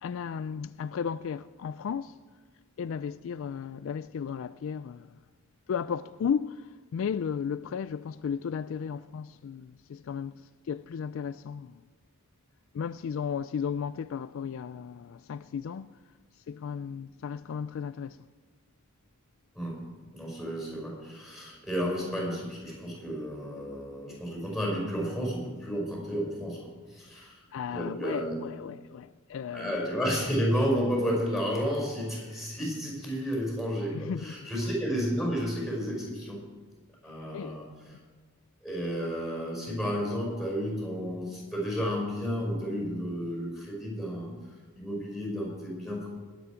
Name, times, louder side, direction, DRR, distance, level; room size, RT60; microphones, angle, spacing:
voice 1, 0.0-2.2 2.8-5.2 5.7-11.8 12.7-16.0 16.5-18.3 27.2-29.8 33.9-34.7 37.3-37.6 37.9-38.0, left 7 dB, 65° left, 0.3 m, -35 dB
voice 2, 19.6-27.4 27.7-28.4 29.5-36.4 37.0-37.7 38.6-44.3 44.8-46.1, equal, ahead, 5.5 m, -32 dB
20.0 x 8.4 x 5.0 m
head